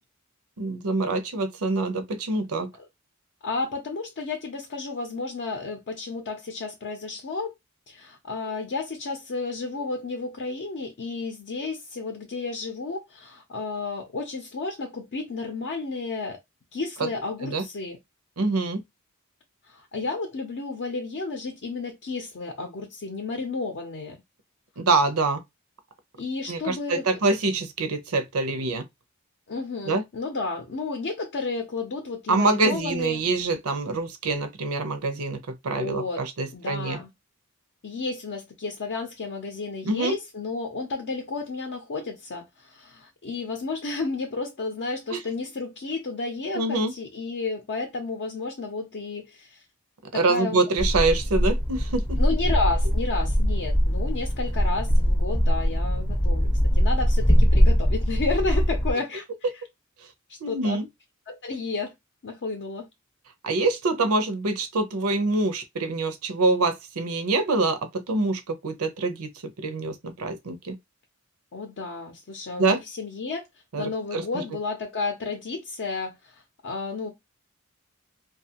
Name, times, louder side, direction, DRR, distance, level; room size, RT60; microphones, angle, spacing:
voice 1, 0.6-2.7 17.0-17.1 17.4-17.6 18.4-18.8 24.8-25.4 26.5-28.8 29.9-30.0 32.3-37.0 39.9-40.2 45.1-45.2 46.5-46.9 50.1-52.2 60.4-60.9 63.4-69.3 69.6-70.8 72.6-72.8 73.7-74.4, right 3 dB, 80° right, 0.6 m, -25 dB
voice 2, 3.4-7.5 7.9-16.4 16.7-18.0 19.7-24.2 26.2-27.1 29.5-33.2 35.7-36.2 36.5-37.1 37.8-49.6 50.1-50.6 52.2-59.3 60.3-60.8 61.3-61.9 62.2-62.9 71.5-73.5 73.8-77.1, left 3 dB, 55° left, 0.6 m, -32 dB
sound 1, 50.8-58.9, equal, 10° left, 0.5 m, -22 dB
2.6 x 2.3 x 2.8 m
head